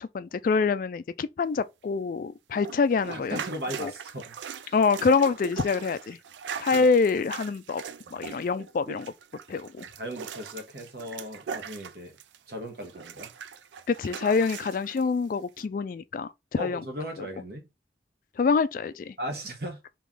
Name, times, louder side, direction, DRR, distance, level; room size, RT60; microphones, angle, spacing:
voice 1, 0.0-3.4 3.8-3.9 4.7-6.2 6.6-7.8 8.1-9.1 9.5-9.9 13.9-16.8 17.2-17.3 18.4-19.2, left 4 dB, 50° left, 0.3 m, -26 dB
sound 1, 2.5-12.5 12.8-15.0 15.6-15.7, right 7 dB, 85° right, 0.4 m, -40 dB
voice 2, 3.1-4.4 4.6-4.7 6.7-6.8 8.1-8.2 10.0-12.1 12.5-13.3 16.6-17.7 19.2-19.8, equal, 60° right, 1.3 m, -37 dB
3.2 x 3.0 x 3.7 m
head